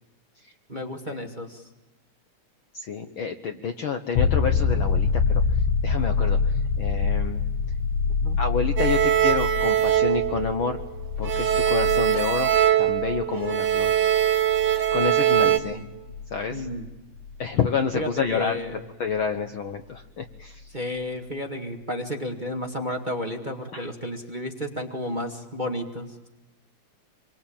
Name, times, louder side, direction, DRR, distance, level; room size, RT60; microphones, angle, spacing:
voice 1, 0.7-1.6 8.2-8.4 15.4-15.8 16.5-16.9 17.9-18.8 20.7-26.3, left 1 dB, 20° right, 3 dB, 1.7 m, -32 dB
voice 2, 2.7-5.4 5.8-7.4 8.4-10.8 11.2-12.5 12.8-13.9 14.9-15.8 16.3-16.7 17.4-18.6 19.0-20.7 23.7-23.9, left 6 dB, 55° left, 7 dB, 1.6 m, -28 dB
sound 1, 4.2-17.7 20.4-20.5, left 5 dB, 75° left, 2.3 m, -26 dB
sound 2, 8.8-10.9 11.2-15.6, right 11 dB, 40° right, 2.2 m, -22 dB
27.0 x 23.5 x 8.8 m, 1.1 s
omnidirectional pair, 3.3 m